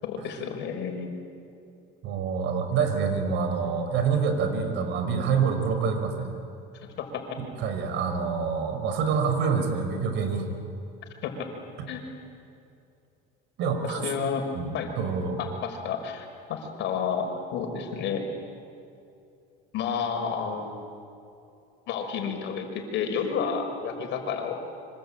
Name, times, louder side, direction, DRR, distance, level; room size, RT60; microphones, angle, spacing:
voice 1, 0.0-1.1 7.0-7.2 11.2-11.5 11.9-12.0 13.8-14.4 14.7-14.9 15.4-18.2 19.7-20.9 21.9-24.6, left 6 dB, 60° left, 3 dB, 5.6 m, -31 dB
voice 2, 2.0-6.3 7.4-10.5 13.6-14.1 14.5-15.4, right 5 dB, 60° right, 6 dB, 5.2 m, -26 dB
26.0 x 25.5 x 8.9 m, 2.6 s
cardioid pair, 115°, 21 cm